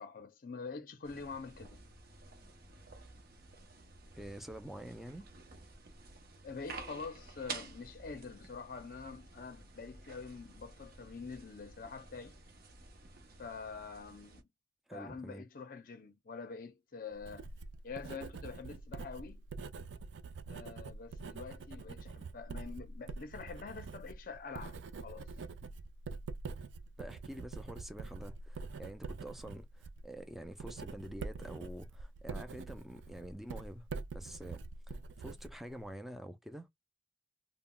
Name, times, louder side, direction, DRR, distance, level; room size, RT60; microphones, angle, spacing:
voice 1, 0.0-1.9 6.4-12.4 13.4-14.4 14.9-17.5 17.8-19.4 20.5-25.3, left 4 dB, 50° left, 0.5 m, -46 dB
sound 1, 1.0-14.4, right 4 dB, 55° right, 0.7 m, -51 dB
voice 2, 4.1-5.3 14.9-15.5 27.0-33.9 34.1-36.7, equal, ahead, 0.4 m, -47 dB
Writing, 17.1-36.0, right 4 dB, 85° right, 0.3 m, -45 dB
2.2 x 2.0 x 3.7 m
head